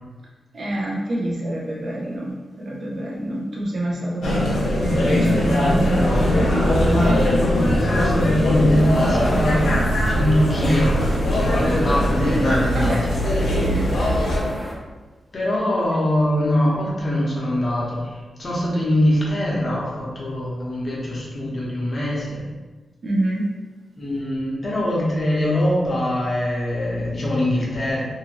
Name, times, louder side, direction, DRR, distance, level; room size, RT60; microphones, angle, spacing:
voice 1, 0.5-2.3 2.6-6.4 6.7-7.1 12.7-13.1 13.5-13.9 23.0-23.5, right 1 dB, 55° right, -3 dB, 0.7 m, -27 dB
sound 1, 4.2-14.4, equal, 85° left, 0.7 m, -20 dB
voice 2, 4.5-4.8 5.8-6.3 7.4-9.6 10.1-13.0 15.3-22.4 24.0-28.0, left 1 dB, 35° left, -5 dB, 0.8 m, -23 dB
sound 2, 8.7-14.7, equal, 10° left, 0.5 m, -31 dB
2.7 x 2.5 x 2.9 m, 1.3 s
wide cardioid pair, 120°, 0 cm